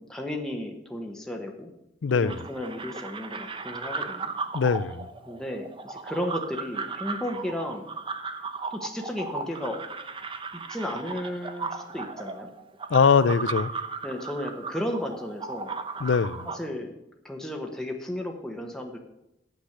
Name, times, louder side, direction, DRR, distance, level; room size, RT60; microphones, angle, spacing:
voice 1, 0.0-1.7 2.1-4.3 5.3-7.8 8.7-9.8 10.7-12.5 14.0-15.7 16.5-16.9 17.2-19.0, left 1 dB, 5° left, 1.0 m, -34 dB
voice 2, 2.0-2.4 4.5-5.1 12.9-13.7 16.0-16.5, left 5 dB, 85° left, 0.4 m, -22 dB
sound 1, 2.3-16.6, right 4 dB, 30° right, 0.7 m, -36 dB
8.7 x 8.0 x 6.6 m
head